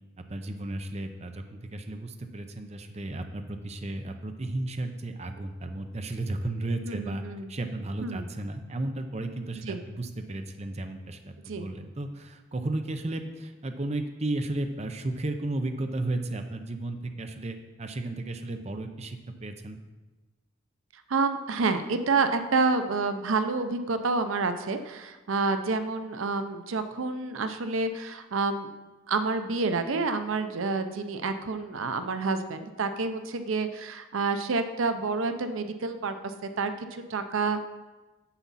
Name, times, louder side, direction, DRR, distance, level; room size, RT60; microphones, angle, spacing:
voice 1, 0.3-7.2 7.5-19.8, right 2 dB, 30° right, 7 dB, 0.6 m, -34 dB
voice 2, 6.8-7.5 8.0-8.2 9.7-9.8 11.5-11.7 20.9-28.7 29.1-37.6, right 3 dB, 75° right, 9 dB, 0.6 m, -28 dB
9.8 x 7.1 x 4.1 m, 1.2 s
head